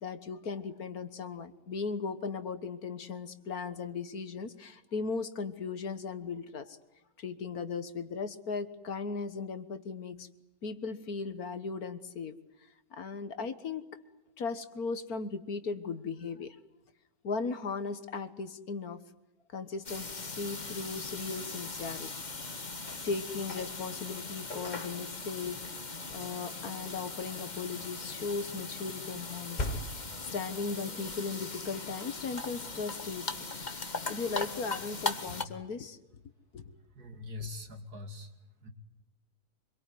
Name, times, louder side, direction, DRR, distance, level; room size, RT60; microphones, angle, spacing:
voice 1, 0.0-6.8 7.2-10.3 10.6-12.3 12.9-13.8 14.4-16.6 17.2-19.0 19.5-22.1 23.0-29.8 30.2-33.2 34.1-36.0 36.5-36.7, left 4 dB, 60° left, 11 dB, 1.8 m, -37 dB
sound 1, 19.8-35.4, left 3 dB, 25° left, 1.5 m, -39 dB
voice 2, 37.0-38.3 38.6-38.7, left 3 dB, 65° right, 6 dB, 3.0 m, -42 dB
25.5 x 23.0 x 9.4 m, 0.91 s
omnidirectional pair, 1.8 m